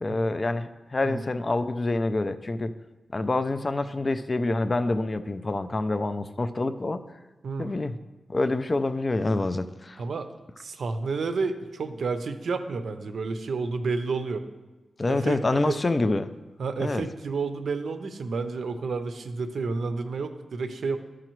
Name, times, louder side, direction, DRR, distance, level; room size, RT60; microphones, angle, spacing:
voice 1, 0.0-2.7 3.1-7.0 7.6-8.0 8.3-10.0 15.0-16.3 16.8-17.0, left 2 dB, 30° left, 9 dB, 0.3 m, -26 dB
voice 2, 7.4-7.7 10.0-10.3 10.6-14.4 15.1-15.8 16.6-21.0, right 4 dB, 70° right, 8 dB, 0.6 m, -30 dB
12.0 x 4.8 x 3.0 m, 1.2 s
wide cardioid pair, 125°, 0 cm